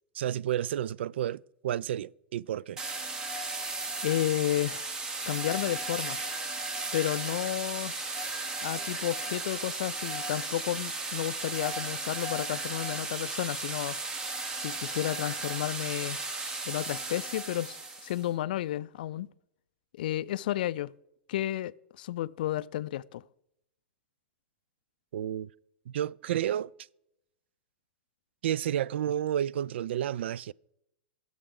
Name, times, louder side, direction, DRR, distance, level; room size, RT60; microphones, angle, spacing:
voice 1, 0.1-2.8 25.1-25.5 25.9-26.7 28.4-30.5, right 10 dB, 85° right, 0.3 m, -31 dB
sound 1, 2.8-18.2, right 3 dB, 10° right, 0.7 m, -35 dB
voice 2, 4.0-4.9 5.3-6.2 6.9-7.9 8.6-14.0 14.6-16.2 16.7-19.3 19.9-20.9 21.3-23.2, left 13 dB, 55° left, 0.3 m, -32 dB
24.0 x 7.9 x 3.7 m
supercardioid pair, 180°, 6 cm